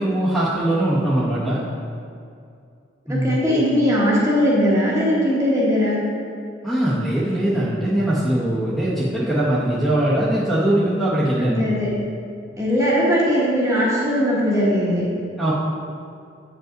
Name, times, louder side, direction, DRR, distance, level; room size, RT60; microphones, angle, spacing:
voice 1, 0.0-1.6 3.1-3.4 6.6-11.6 15.4-15.5, right 1 dB, ahead, -12 dB, 1.2 m, -21 dB
voice 2, 3.1-6.0 11.5-11.9 12.6-15.0, equal, 15° right, -6 dB, 1.5 m, -19 dB
8.2 x 5.3 x 3.9 m, 2.4 s
head